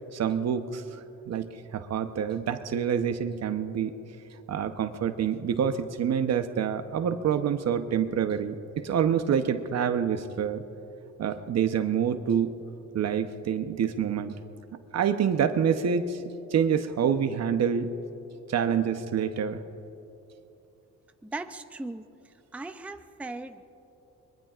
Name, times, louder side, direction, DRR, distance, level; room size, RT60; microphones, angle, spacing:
voice 1, 0.1-1.0 1.3-3.9 4.5-10.6 11.2-12.6 12.9-14.4 14.9-16.2 16.5-17.9 18.5-19.6, right 8 dB, 60° right, 9 dB, 0.9 m, -27 dB
voice 2, 21.2-22.0 22.5-23.6, right 2 dB, 5° right, 8 dB, 0.5 m, -38 dB
24.0 x 22.0 x 2.5 m, 2.9 s
cardioid pair, 90°, 30 cm